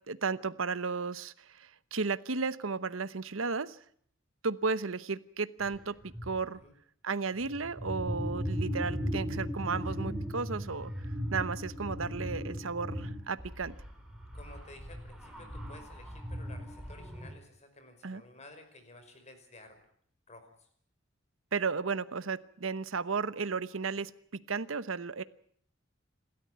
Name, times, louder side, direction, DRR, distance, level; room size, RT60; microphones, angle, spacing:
voice 1, 0.1-3.8 4.4-6.6 7.0-10.9 11.3-13.8 18.0-18.2 21.5-25.2, right 4 dB, 85° right, 15 dB, 1.0 m, -34 dB
sound 1, 5.6-5.7 6.0-6.4 7.4-17.3, equal, 5° right, 4.3 m, -37 dB
voice 2, 14.3-19.8 20.3-20.7, left 2 dB, 35° left, 7 dB, 5.2 m, -53 dB
28.0 x 13.5 x 9.3 m, 0.62 s
head